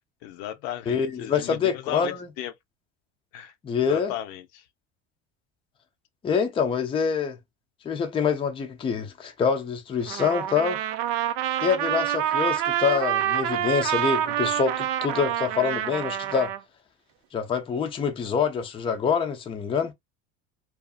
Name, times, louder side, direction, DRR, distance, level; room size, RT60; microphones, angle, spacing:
voice 1, 0.2-2.5 3.3-4.7, left 12 dB, 85° left, 0.6 m, -36 dB
voice 2, 0.9-2.1 3.6-4.1 6.2-7.4 7.8-10.8 11.6-16.5 17.3-19.9, left 6 dB, 15° left, 0.4 m, -25 dB
Trumpet, 10.1-16.6, right 11 dB, 75° right, 0.5 m, -27 dB
2.6 x 2.4 x 2.3 m
cardioid pair, 130°, 33 cm